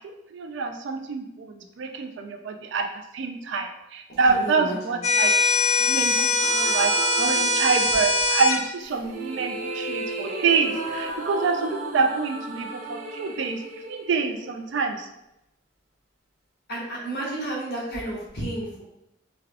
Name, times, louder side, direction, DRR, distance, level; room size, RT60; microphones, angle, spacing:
voice 1, 0.3-2.9 3.1-5.3 5.8-6.9 7.2-13.6 13.9-15.1, right 4 dB, 60° right, 5 dB, 0.3 m, -26 dB
voice 2, 4.3-5.0 16.7-18.8, right 1 dB, 50° left, -6 dB, 1.3 m, -32 dB
sound 1, 5.0-8.6, left 2 dB, 35° left, 0.4 m, -22 dB
sound 2, 6.4-8.1 8.8-14.9, right 2 dB, 40° right, 0.8 m, -34 dB
3.5 x 2.3 x 3.3 m, 0.85 s
head